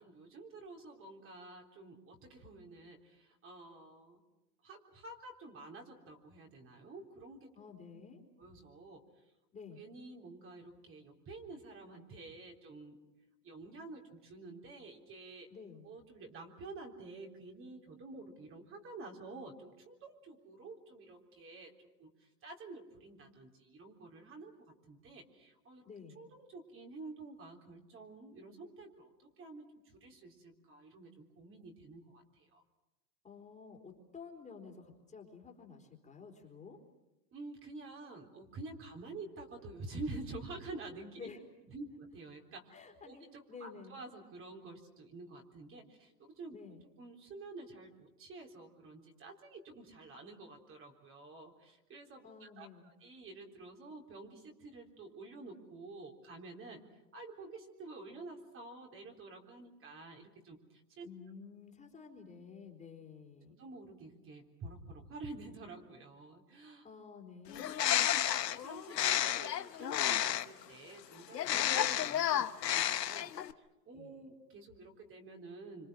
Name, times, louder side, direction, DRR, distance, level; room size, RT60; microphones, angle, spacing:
voice 1, 0.0-4.2 4.6-7.5 7.9-8.0 8.4-9.2 9.8-13.0 13.4-15.5 15.8-24.6 24.8-25.8 26.1-32.6 37.3-41.3 41.7-42.7 43.0-46.6 47.0-52.7 53.0-56.8 57.1-61.1 63.6-66.8 68.1-75.9, right 2 dB, 25° right, 1 dB, 3.9 m, -49 dB
voice 2, 7.6-8.2 9.5-9.8 15.5-15.9 25.9-26.2 33.2-36.8 41.2-41.4 42.7-44.0 46.5-46.9 52.2-52.9 61.0-63.6 66.8-67.7 71.5-71.6 73.9-74.2, left 5 dB, 15° left, 1 dB, 3.9 m, -51 dB
Bird, 67.5-70.6 71.3-73.5, left 11 dB, 85° left, 1.2 m, -31 dB
26.0 x 26.0 x 6.3 m, 0.97 s
hypercardioid pair, 125°, 48 cm